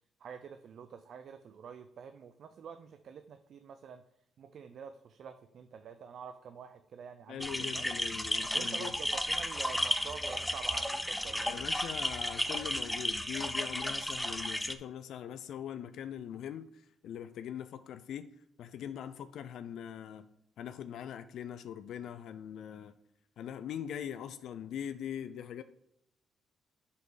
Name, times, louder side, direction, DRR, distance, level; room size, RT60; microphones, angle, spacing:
voice 1, 0.2-4.0 4.4-7.9 8.5-11.7, right 7 dB, 65° right, 0.4 m, -47 dB
voice 2, 7.3-8.9 11.5-18.3 18.6-20.3 20.6-22.9 23.4-25.6, left 9 dB, 75° left, 0.3 m, -42 dB
sound 1, 7.4-14.7, left 1 dB, 5° left, 0.5 m, -33 dB
5.4 x 3.9 x 4.9 m
cardioid pair, 90°, 0 cm